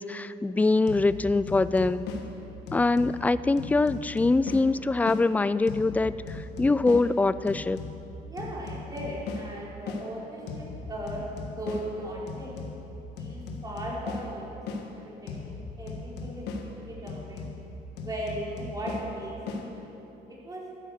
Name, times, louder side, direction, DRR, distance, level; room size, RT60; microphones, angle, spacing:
voice 1, 0.0-2.1 2.7-7.8, left 3 dB, 10° left, 16 dB, 0.3 m, -24 dB
sound 1, 0.9-5.3 5.7-10.1 10.5-14.9 15.3-19.7, left 3 dB, 85° left, 1.6 m, -38 dB
voice 2, 8.3-12.6 13.2-15.0 15.2-17.5 18.0-19.8 20.3-20.6, right 1 dB, 20° right, -5 dB, 4.0 m, -38 dB
13.5 x 11.0 x 6.5 m, 3.0 s
cardioid pair, 110°, 17 cm